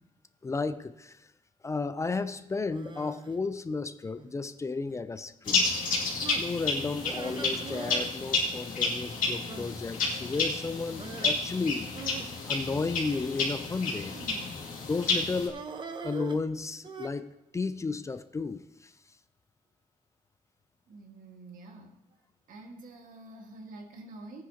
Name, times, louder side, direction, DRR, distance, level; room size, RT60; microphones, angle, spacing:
voice 1, 0.4-1.2 1.6-5.7 6.3-11.9 12.5-14.2 14.9-15.6 16.0-18.9, left 4 dB, 20° left, 13 dB, 0.4 m, -33 dB
sound 1, 2.7-3.4 4.2-4.5 4.9-5.0 5.5-5.7 6.2-6.5 7.0-8.2 8.4-8.5 8.8-8.9 9.5-9.7 11.0-11.4 11.9-13.3 14.1-14.5 15.5-17.1, right 4 dB, 35° right, 0.9 m, -42 dB
sound 2, 5.5-15.5, left 3 dB, 85° left, 2.5 m, -31 dB
voice 2, 20.9-21.9 22.5-24.4, right 2 dB, 80° right, 2 dB, 1.7 m, -47 dB
17.5 x 9.7 x 2.9 m, 0.88 s
cardioid pair, 130°, 14 cm